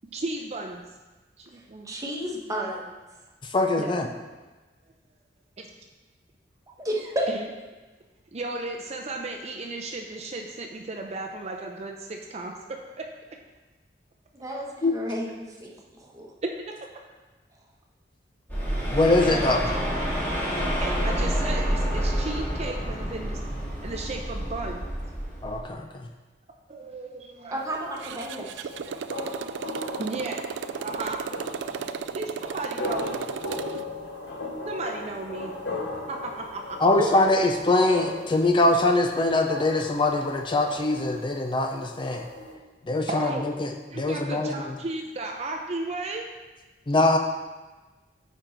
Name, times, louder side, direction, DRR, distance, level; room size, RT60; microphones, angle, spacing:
voice 1, 0.1-0.9 1.4-2.0 3.8-4.0 7.3-7.4 8.3-13.1 16.4-16.9 19.2-19.8 20.8-23.4 23.8-24.9 26.7-27.6 30.0-30.5 30.8-31.3 32.1-33.2 34.7-35.8 36.1-36.8 43.1-43.5 43.9-46.3, right 2 dB, 40° right, 2 dB, 0.6 m, -34 dB
voice 2, 1.5-2.9 6.8-7.3 14.3-16.3 27.5-28.7 32.7-32.8 36.9-37.3, right 1 dB, 20° right, -2 dB, 1.1 m, -32 dB
voice 3, 3.5-4.1 14.8-14.9 18.9-19.7 25.4-25.9 36.8-42.3 42.9-43.3 43.6-44.5 46.9-47.2, left 2 dB, 30° left, 4 dB, 0.4 m, -23 dB
sound 1, 18.5-25.6, equal, 10° left, 1.9 m, -28 dB
sound 2, 27.5-42.5, left 2 dB, 75° left, 1.0 m, -38 dB
Motorcycle, 28.0-33.8, right 7 dB, 90° right, 0.3 m, -35 dB
9.2 x 4.5 x 3.9 m, 1.2 s
head